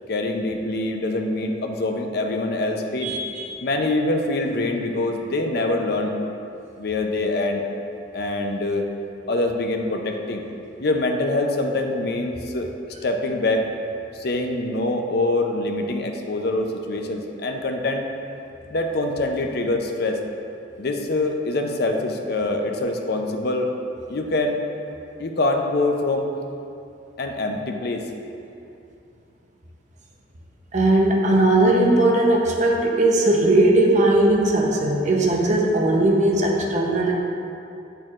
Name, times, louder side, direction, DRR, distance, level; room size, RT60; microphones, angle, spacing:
voice 1, 0.1-3.1 3.6-6.2 6.8-7.7 8.1-8.9 9.3-10.4 10.8-13.7 14.1-18.0 18.7-20.2 20.8-23.7 24.1-24.6 25.2-26.3 27.2-28.1 32.1-32.2, left 2 dB, 60° left, 3 dB, 0.6 m, -24 dB
voice 2, 3.0-3.6 30.7-37.1, right 1 dB, 40° right, -1 dB, 0.7 m, -18 dB
7.9 x 6.6 x 2.4 m, 2.7 s
head